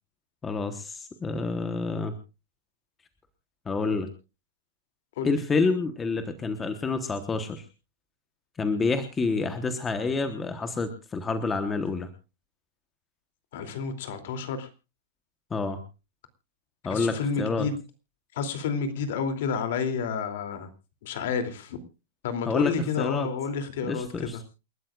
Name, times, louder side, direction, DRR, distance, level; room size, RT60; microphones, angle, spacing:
voice 1, 0.4-2.1 3.7-4.1 5.2-7.6 8.6-12.1 15.5-15.8 16.8-17.7 22.5-23.3 23.9-24.4, left 4 dB, 10° left, 9 dB, 1.1 m, -28 dB
voice 2, 13.5-14.7 16.9-17.8 18.3-20.7 21.0-21.8 22.2-24.4, left 6 dB, 50° left, 9 dB, 2.8 m, -30 dB
28.5 x 12.5 x 2.4 m, 0.31 s
supercardioid pair, 180°, 0 cm